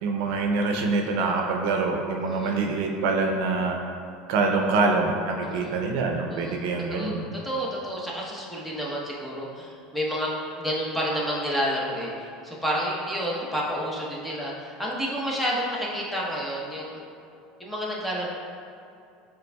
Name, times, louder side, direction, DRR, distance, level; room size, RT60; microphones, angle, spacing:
voice 1, 0.0-3.8 4.3-7.2, right 3 dB, 75° right, 2 dB, 0.5 m, -25 dB
voice 2, 6.3-6.6 6.9-7.1 7.4-17.0 17.6-18.3, equal, 5° left, -4 dB, 0.9 m, -30 dB
6.8 x 3.4 x 2.3 m, 2.6 s
supercardioid pair, 120°, 0 cm